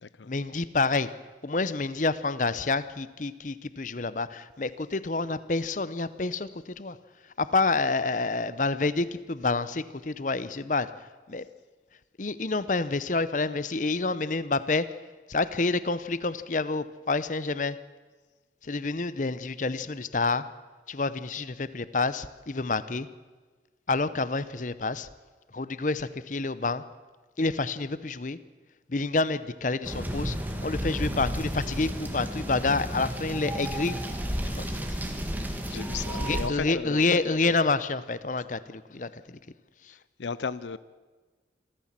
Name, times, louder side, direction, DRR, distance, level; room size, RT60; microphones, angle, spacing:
voice 1, 0.2-1.1 1.4-7.0 7.4-11.5 12.2-14.9 15.3-17.8 18.6-20.4 20.9-23.1 23.9-25.1 25.5-26.8 27.4-28.4 28.9-30.4 30.6-34.0 34.4-35.0 36.1-39.4 39.8-39.9, left 3 dB, 45° left, 15 dB, 0.7 m, -28 dB
sound 1, 29.8-36.5, equal, 10° right, 1.9 m, -32 dB
voice 2, 35.7-37.0 39.9-40.8, left 5 dB, 80° left, 17 dB, 0.6 m, -35 dB
26.0 x 13.5 x 7.5 m, 1.3 s
head